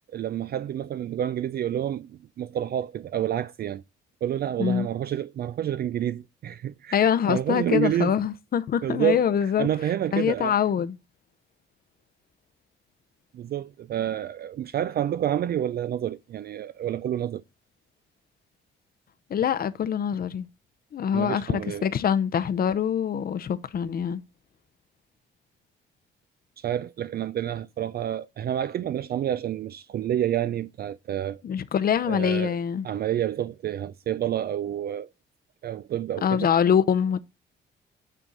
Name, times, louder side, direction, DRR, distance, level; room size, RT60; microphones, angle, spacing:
voice 1, 0.1-3.8 4.2-8.1 8.8-10.6 13.3-17.4 21.1-21.9 26.6-31.4 32.0-32.5 32.8-35.1 35.6-36.5, right 10 dB, 50° right, 0.4 m, -29 dB
voice 2, 6.9-9.7 10.1-11.0 19.3-20.5 20.9-24.2 31.4-32.9 36.2-37.2, left 8 dB, 50° left, 0.7 m, -24 dB
9.1 x 3.5 x 4.0 m
cardioid pair, 90°, 20 cm